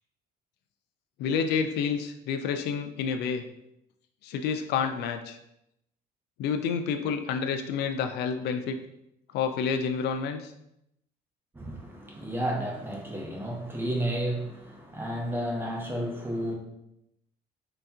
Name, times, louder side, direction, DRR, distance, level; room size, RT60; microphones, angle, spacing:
voice 1, 1.2-3.4 4.2-5.4 6.4-8.8 9.3-10.5, left 6 dB, 75° left, 8 dB, 0.4 m, -29 dB
voice 2, 11.5-16.5, right 1 dB, 15° right, -1 dB, 0.9 m, -32 dB
3.4 x 2.9 x 3.5 m, 0.81 s
cardioid pair, 110°, 17 cm